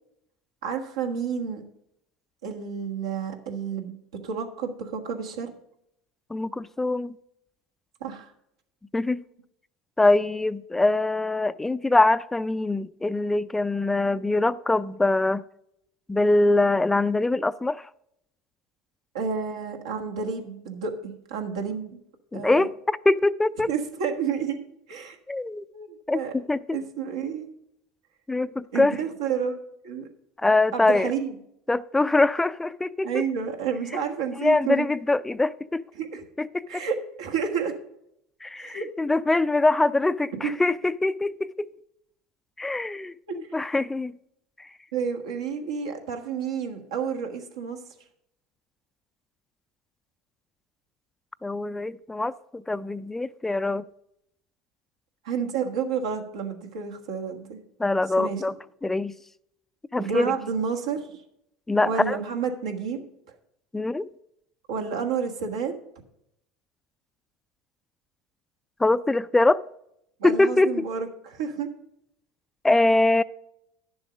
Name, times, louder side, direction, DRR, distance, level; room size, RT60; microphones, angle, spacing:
voice 1, 0.6-1.6 2.4-4.0 4.2-5.5 8.0-8.3 19.1-22.0 22.3-22.7 23.7-24.6 24.9-25.2 25.7-26.3 26.7-27.5 28.7-29.6 29.8-30.1 30.7-31.3 33.0-34.9 35.9-36.2 36.7-37.7 38.6-38.8 40.3-40.5 43.3-43.4 44.9-47.8 55.2-57.6 58.2-58.4 60.0-61.2 61.8-63.0 64.7-65.7 70.2-71.7, right 6 dB, 85° right, 3 dB, 1.5 m, -30 dB
voice 2, 6.3-7.2 8.9-9.2 10.0-15.4 16.1-17.9 22.3-23.7 25.3-25.6 26.1-26.8 28.3-28.9 30.4-31.1 31.7-33.2 34.4-35.8 36.4-36.5 36.7-36.8 38.4-41.7 42.6-43.1 43.5-44.1 51.4-53.9 57.8-58.5 58.8-59.1 59.9-60.3 61.7-62.2 63.7-64.1 68.8-69.6 70.2-70.8 72.6-73.2, left 2 dB, 10° left, 16 dB, 0.3 m, -23 dB
10.5 x 7.1 x 5.1 m, 0.77 s
hypercardioid pair, 90°, 3 cm